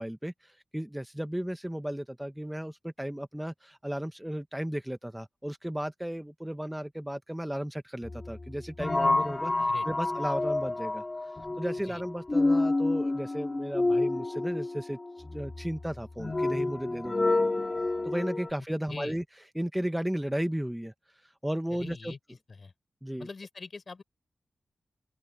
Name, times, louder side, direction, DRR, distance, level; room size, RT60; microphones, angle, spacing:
voice 1, 0.0-17.5 18.0-19.2 19.5-22.1 23.0-23.3, equal, 5° right, 0.6 m, -35 dB
sound 1, 8.0-18.5, left 2 dB, 25° left, 1.5 m, -29 dB
voice 2, 21.7-22.2 22.5-22.7 23.2-24.0, left 4 dB, 40° left, 3.6 m, -42 dB
open air
wide cardioid pair, 135°, 0 cm